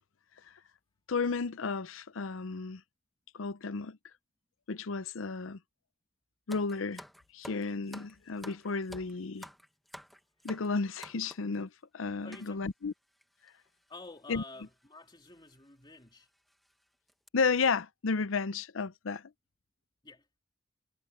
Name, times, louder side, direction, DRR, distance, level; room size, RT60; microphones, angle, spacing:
voice 1, 1.1-2.8 3.3-4.0 4.7-5.6 6.5-7.0 7.3-9.5 10.4-12.9 14.3-14.4 17.3-19.2, left 4 dB, 75° left, 0.6 m, -32 dB
sound 1, 6.5-11.6 12.3-12.5 13.2-13.3 13.5-13.7 14.6-14.8 15.3-15.4 15.9-16.0 16.5-16.7 17.1-17.3, equal, ahead, 1.3 m, -50 dB
voice 2, 12.2-12.6 13.9-16.3 20.0-20.3, left 3 dB, 20° left, 3.1 m, -50 dB
head